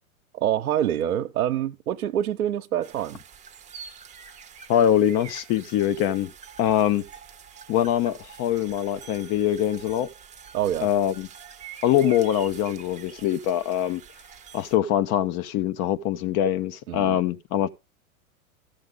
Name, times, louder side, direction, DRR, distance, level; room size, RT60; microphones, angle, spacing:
voice 1, 0.3-3.2 10.5-10.9 16.9-17.2, right 11 dB, 80° right, 1.0 m, -26 dB
sound 1, 2.8-14.8, right 7 dB, 15° right, 0.9 m, -46 dB
voice 2, 4.7-6.3 6.6-7.0 7.7-10.1 10.8-11.3 11.8-14.0 14.5-17.7, left 11 dB, 35° left, 0.9 m, -23 dB
14.0 x 6.7 x 3.8 m
hypercardioid pair, 110°, 43 cm